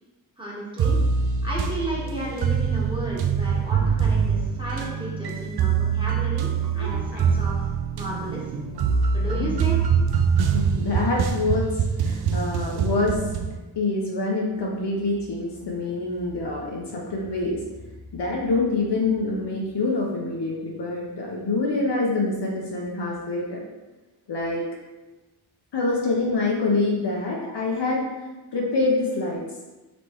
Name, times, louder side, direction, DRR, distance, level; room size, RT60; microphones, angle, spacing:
voice 1, 0.4-1.0 1.4-8.6 9.1-9.8, right 1 dB, 10° right, -6 dB, 1.5 m, -33 dB
sound 1, 0.8-13.6, right 6 dB, 50° right, 0.5 m, -24 dB
voice 2, 6.8-7.3 10.4-13.3 13.8-17.6 18.1-23.6 24.3-24.6 25.7-28.0 28.5-29.4, left 3 dB, 55° left, -3 dB, 0.9 m, -26 dB
4.1 x 3.2 x 3.1 m, 1.1 s
cardioid pair, 55°, 50 cm